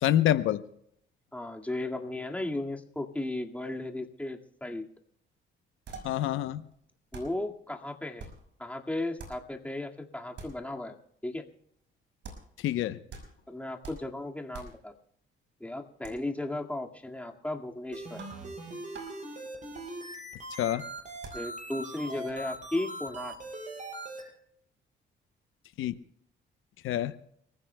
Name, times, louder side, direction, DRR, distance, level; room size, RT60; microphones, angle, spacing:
voice 1, 0.0-0.6 6.0-6.6 12.6-13.0 20.6-20.8 25.8-25.9 26.8-27.1, left 12 dB, 85° left, 11 dB, 0.8 m, -26 dB
voice 2, 1.3-4.8 7.1-8.3 8.6-10.9 11.2-11.4 13.5-14.9 15.6-18.2 21.3-23.4, left 2 dB, 5° left, 2 dB, 1.9 m, -35 dB
sound 1, 5.9-6.3 6.7-6.8 7.1-7.5 8.2-8.6 9.2-9.5 10.4-10.7 12.2-12.6 13.1-13.5 13.8-14.2 14.5-14.9 16.0-16.2 18.2-18.6 18.9-19.2 19.7-19.9 21.2-21.5, right 4 dB, 65° right, 5.5 m, -46 dB
sound 2, 17.9-24.2, right 1 dB, 40° right, 7.0 m, -41 dB
29.5 x 15.0 x 2.2 m, 0.69 s
cardioid pair, 90°, 20 cm